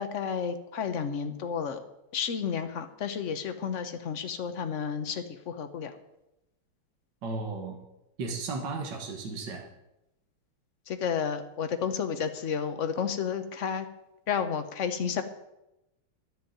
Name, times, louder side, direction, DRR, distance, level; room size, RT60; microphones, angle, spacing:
voice 1, 0.0-1.8 2.1-5.9 10.9-13.9 14.3-15.2, left 7 dB, 50° left, 8 dB, 1.0 m, -31 dB
voice 2, 7.2-7.8 8.2-9.6, right 3 dB, 60° right, 2 dB, 2.1 m, -34 dB
10.5 x 7.4 x 9.2 m, 0.90 s
omnidirectional pair, 2.3 m